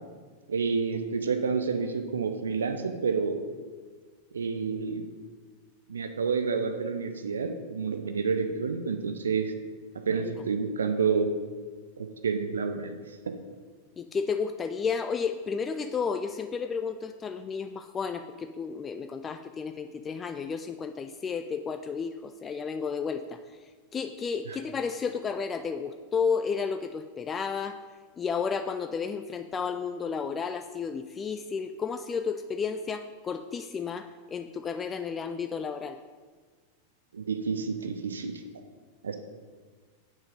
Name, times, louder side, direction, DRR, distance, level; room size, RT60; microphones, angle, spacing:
voice 1, 0.5-3.4 4.3-5.1 5.9-9.5 10.1-11.3 12.0-13.0 13.3-13.4 24.5-24.6 37.1-38.3 39.0-39.2, right 5 dB, 70° right, 7 dB, 0.6 m, -29 dB
voice 2, 14.0-23.4 23.9-27.8 28.2-36.0, left 6 dB, 20° left, 8 dB, 0.3 m, -32 dB
7.4 x 6.0 x 5.1 m, 1.5 s
figure-of-eight pair, 90°, 0 cm